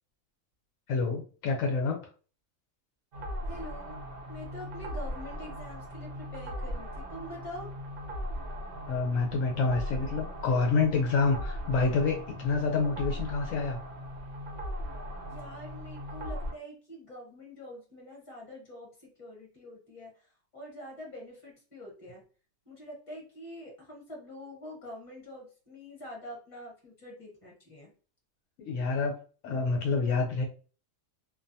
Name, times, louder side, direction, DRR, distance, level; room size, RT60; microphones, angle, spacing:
voice 1, 0.9-2.0 8.8-13.8 28.6-29.1 29.4-30.4, left 4 dB, 80° left, 1 dB, 0.9 m, -28 dB
sound 1, 3.1-16.5, equal, 75° right, 1.0 m, -39 dB
voice 2, 3.5-4.0 4.3-7.7 15.3-22.2 22.6-27.9, left 1 dB, 25° left, -2 dB, 1.1 m, -45 dB
2.5 x 2.2 x 2.6 m, 0.37 s
omnidirectional pair, 1.4 m